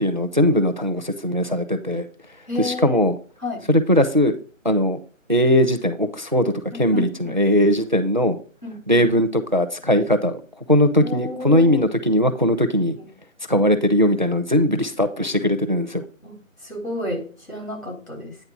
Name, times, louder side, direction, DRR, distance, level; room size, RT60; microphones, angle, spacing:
voice 1, 0.0-2.1 2.6-3.2 3.7-4.3 4.6-5.0 5.3-6.5 6.8-8.4 8.9-10.4 10.7-13.0 13.5-16.0, left 1 dB, 35° right, 10 dB, 0.4 m, -19 dB
voice 2, 2.5-3.0 3.4-3.6 6.7-7.4 8.6-9.0 11.0-11.8 13.0-13.1 16.2-16.4 16.6-18.4, left 1 dB, 80° left, -1 dB, 3.7 m, -31 dB
9.2 x 3.2 x 5.6 m, 0.39 s
figure-of-eight pair, 155°, 40 cm